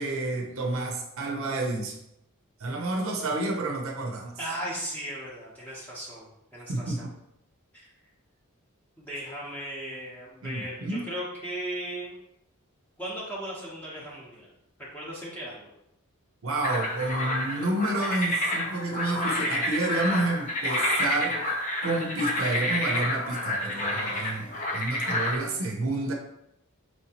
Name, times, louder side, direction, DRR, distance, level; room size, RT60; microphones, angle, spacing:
voice 1, 0.0-2.0 2.6-4.4 6.7-7.1 10.4-11.1 16.4-21.4 21.8-26.1, right 2 dB, 65° right, 1 dB, 0.6 m, -29 dB
voice 2, 4.4-7.1 7.7-7.9 9.0-12.1 13.0-14.5 14.8-15.7, right 1 dB, 5° left, -7 dB, 0.8 m, -37 dB
sound 1, 16.6-25.4, left 1 dB, 35° left, 0.6 m, -29 dB
4.4 x 2.8 x 2.8 m, 0.81 s
head